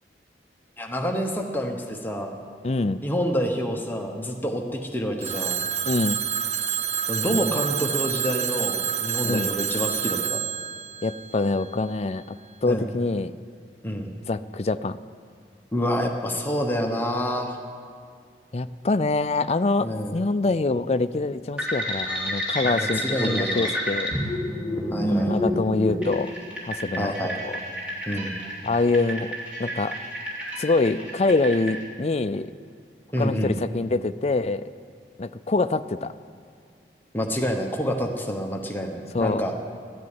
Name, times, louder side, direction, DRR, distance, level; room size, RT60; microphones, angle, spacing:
voice 1, 0.8-2.4 3.0-5.6 7.1-10.5 12.6-12.9 13.8-14.1 15.7-17.6 19.8-20.2 22.6-23.7 24.9-25.5 27.0-27.4 28.1-28.4 33.1-33.6 37.1-39.5, equal, 10° left, 2 dB, 1.1 m, -28 dB
voice 2, 2.6-3.0 5.9-6.2 9.2-9.5 11.0-13.3 14.3-15.0 18.5-24.1 25.1-26.3 26.6-27.1 27.4-27.6 28.6-29.3 29.6-30.0 30.6-32.5 33.2-34.7 35.2-36.1 39.1-39.4, left 3 dB, 35° left, 13 dB, 0.4 m, -25 dB
Telephone, 5.2-12.0, right 9 dB, 40° right, 0.6 m, -28 dB
sound 1, 21.6-31.8, equal, 5° right, 3.1 m, -29 dB
13.5 x 10.5 x 9.6 m, 2.2 s
head